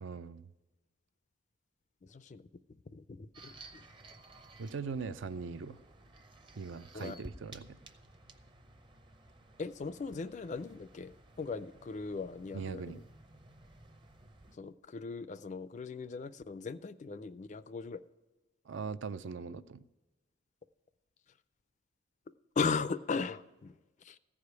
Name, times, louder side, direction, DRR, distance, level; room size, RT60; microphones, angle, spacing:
voice 1, 0.0-0.4 4.6-5.8 6.6-7.7 12.5-13.0 18.7-19.8, right 5 dB, 65° right, 0.4 m, -40 dB
voice 2, 2.1-2.5 2.9-3.5 6.9-7.2 9.6-12.8 14.6-18.0 22.6-23.7 24.1-24.2, left 4 dB, 35° left, 0.4 m, -38 dB
sound 1, 3.3-14.6, right 2 dB, 25° right, 0.6 m, -56 dB
14.5 x 5.0 x 9.4 m
head